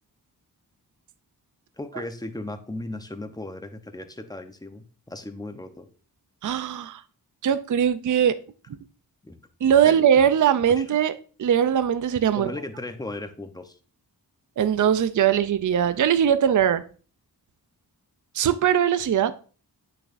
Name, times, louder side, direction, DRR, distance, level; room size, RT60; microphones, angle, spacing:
voice 1, 1.8-5.9 9.2-10.2 10.7-10.9 12.3-13.8, left 2 dB, 10° left, 0.8 m, -37 dB
voice 2, 6.4-7.0 7.4-8.3 9.6-11.1 11.4-12.5 14.6-16.8 18.3-19.3, right 9 dB, 50° right, 0.5 m, -20 dB
8.5 x 6.6 x 2.5 m
wide cardioid pair, 95°, 39 cm